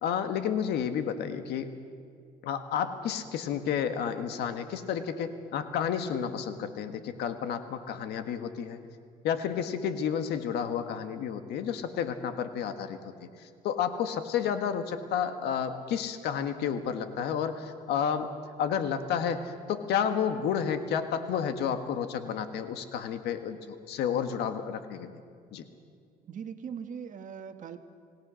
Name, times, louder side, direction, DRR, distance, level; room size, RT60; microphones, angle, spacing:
voice 1, 0.0-1.7 2.4-8.8 9.2-18.3 18.6-25.1 25.5-25.6, left 8 dB, 80° left, 8 dB, 1.7 m, -31 dB
voice 2, 26.2-27.8, right 7 dB, 50° right, 7 dB, 1.6 m, -40 dB
26.5 x 18.5 x 6.4 m, 2.2 s
cardioid pair, 110°, 17 cm